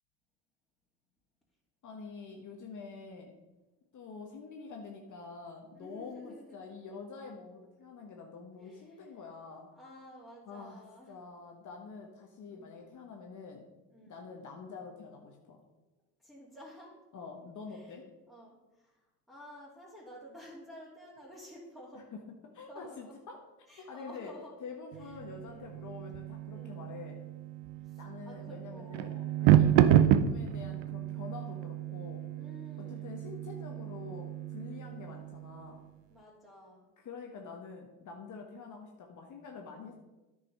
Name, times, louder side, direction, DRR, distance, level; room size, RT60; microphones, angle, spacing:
voice 1, 1.8-3.3 3.9-9.7 10.5-13.7 14.1-15.6 17.1-18.1 21.9-23.4 23.8-24.3 24.6-27.2 28.0-32.2 32.8-35.8 37.0-39.9, left 5 dB, 50° left, 1 dB, 1.3 m, -46 dB
voice 2, 5.7-6.6 7.5-7.9 8.6-9.1 9.7-11.2 12.5-12.9 13.9-14.2 16.2-17.0 17.7-18.0 18.3-22.0 22.7-23.1 23.7-24.5 25.0-25.1 25.4-25.7 26.5-26.9 27.8-29.3 32.3-33.2 34.7-35.2 36.1-36.9, equal, ahead, -8 dB, 2.8 m, -52 dB
sound 1, 24.9-35.7, right 11 dB, 80° right, 0.6 m, -30 dB
9.8 x 5.5 x 5.4 m, 1.1 s
supercardioid pair, 85°, 39 cm